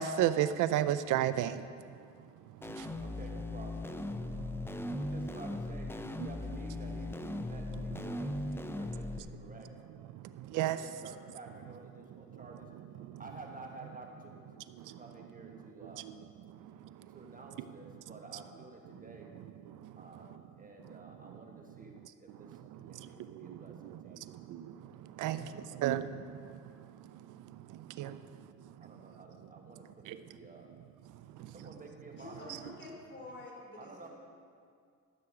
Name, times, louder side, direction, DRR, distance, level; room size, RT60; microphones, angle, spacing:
voice 1, 0.0-1.6 2.6-3.0 4.3-4.5 10.1-10.8 12.1-12.2 13.0-13.2 14.7-15.0 15.8-16.1 16.4-16.8 19.7-20.0 20.8-21.4 22.4-26.5 27.0-28.2 28.8-28.9 30.0-30.2 31.4-31.6, right 11 dB, 85° right, 13 dB, 0.5 m, -35 dB
sound 1, 2.6-9.2, left 1 dB, 10° left, 0.5 m, -38 dB
voice 2, 3.0-3.9 4.9-9.7 10.5-12.7 13.2-14.6 14.9-16.1 17.1-19.3 19.9-21.9 22.2-22.5 22.8-24.3 25.2-25.8 28.1-28.2 28.8-30.7 31.4-32.6 33.8-34.1, right 2 dB, 25° right, 1 dB, 1.4 m, -52 dB
voice 3, 32.1-34.1, left 2 dB, 35° left, -2 dB, 3.0 m, -48 dB
13.0 x 7.9 x 4.8 m, 2.2 s
cardioid pair, 90°, 30 cm